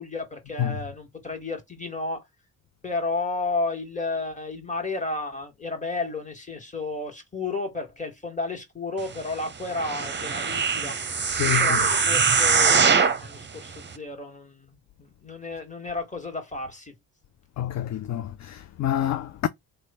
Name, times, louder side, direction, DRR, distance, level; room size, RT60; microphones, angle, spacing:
voice 1, 0.0-2.2 2.8-10.9 11.4-12.9 13.2-16.9, left 3 dB, 15° left, 1.5 m, -32 dB
sound 1, 9.7-13.3 13.9-14.0, right 5 dB, 25° right, 0.7 m, -22 dB
voice 2, 11.3-11.9 17.6-19.5, left 11 dB, 40° left, 0.4 m, -28 dB
3.0 x 2.3 x 4.1 m
hypercardioid pair, 45°, 45 cm